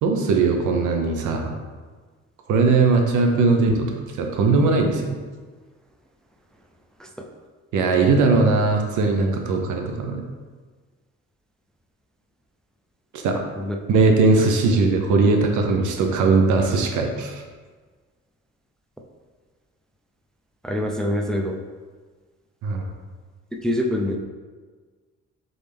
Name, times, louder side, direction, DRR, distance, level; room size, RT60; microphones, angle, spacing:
voice 1, 0.0-1.5 2.5-5.2 7.7-10.2 13.1-13.4 13.9-17.4 22.6-22.8, right 3 dB, 80° right, 3 dB, 0.7 m, -19 dB
voice 2, 20.6-21.6 23.6-24.2, left 1 dB, ahead, 2 dB, 0.3 m, -24 dB
3.9 x 3.5 x 3.4 m, 1.4 s
cardioid pair, 90°, 30 cm